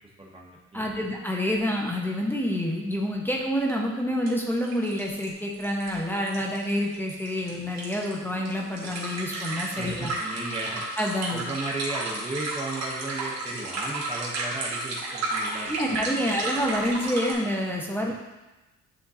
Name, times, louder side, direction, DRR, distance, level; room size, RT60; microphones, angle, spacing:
voice 1, 0.2-1.1 9.8-10.8 11.3-16.5 18.0-18.1, right 2 dB, 20° right, -3 dB, 0.9 m, -35 dB
voice 2, 0.7-10.1 11.0-11.4 15.7-18.1, equal, 5° left, -1 dB, 1.1 m, -28 dB
sound 1, 1.5-1.6 1.8-1.9 3.7-3.8 4.3-4.4 4.6-17.3, right 2 dB, 60° right, 1.7 m, -33 dB
9.9 x 3.6 x 2.8 m, 1.1 s
cardioid pair, 90°, 30 cm